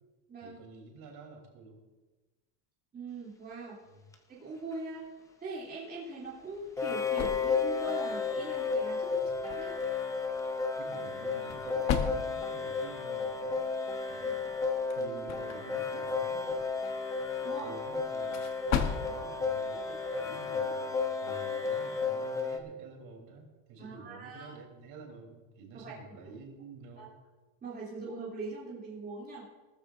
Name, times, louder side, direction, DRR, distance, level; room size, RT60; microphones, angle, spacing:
voice 1, 0.4-1.8 3.8-4.0 9.1-9.3 10.8-13.7 14.1-14.6 15.0-16.7 17.6-18.4 18.9-27.1, right 4 dB, 50° right, 0 dB, 3.6 m, -49 dB
voice 2, 2.9-3.8 4.3-5.0 5.4-9.7 14.2-14.3 17.4-17.7 23.8-24.6 25.7-26.4 27.0-27.1 27.6-29.5, right 3 dB, 20° right, -6 dB, 3.0 m, -42 dB
sound 1, 4.1-4.2 6.8-22.6, left 5 dB, 5° left, 0.5 m, -33 dB
sound 2, 6.2-20.8, left 7 dB, 35° left, 1.0 m, -40 dB
19.0 x 13.5 x 2.6 m, 1.2 s
cardioid pair, 165°, 46 cm